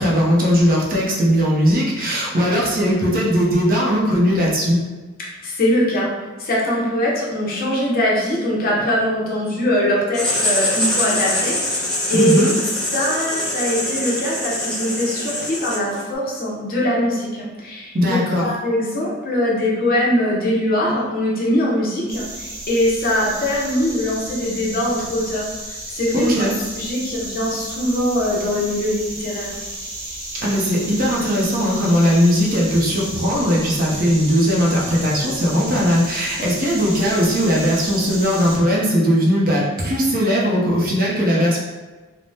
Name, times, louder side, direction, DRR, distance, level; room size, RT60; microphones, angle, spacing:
voice 1, 0.0-4.8 12.1-12.5 17.9-18.5 26.1-26.5 30.4-41.6, equal, 45° right, -4 dB, 0.6 m, -18 dB
voice 2, 5.2-6.1 6.4-12.5 12.9-26.5 26.7-29.5, left 1 dB, 45° left, -4 dB, 0.7 m, -22 dB
Writing, 10.1-16.1, left 1 dB, 5° left, 0.6 m, -24 dB
sound 1, 22.1-38.6, right 1 dB, 80° right, 0.9 m, -33 dB
3.3 x 2.1 x 2.7 m, 1.3 s
head